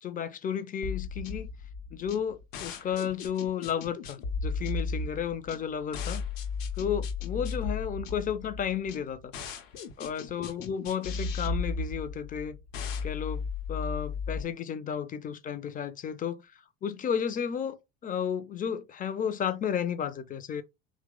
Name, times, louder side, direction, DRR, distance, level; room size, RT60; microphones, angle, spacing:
voice 1, 0.0-1.5 1.9-6.2 6.8-9.3 10.0-12.6 13.0-16.5 16.8-20.6, left 8 dB, 20° left, 0.4 m, -33 dB
sound 1, 0.8-14.4, left 4 dB, 70° left, 0.7 m, -35 dB
2.8 x 2.1 x 3.6 m
hypercardioid pair, 65°, 40 cm